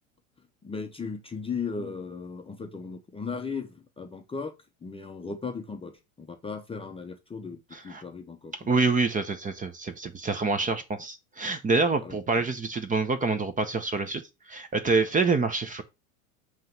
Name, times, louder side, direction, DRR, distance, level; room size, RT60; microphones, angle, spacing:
voice 1, 0.6-4.5 4.8-8.7 12.0-12.4, left 5 dB, 15° left, 0.8 m, -37 dB
voice 2, 7.7-8.0 8.5-15.8, right 4 dB, 20° right, 0.9 m, -27 dB
7.6 x 3.2 x 5.3 m
hypercardioid pair, 110°, 44 cm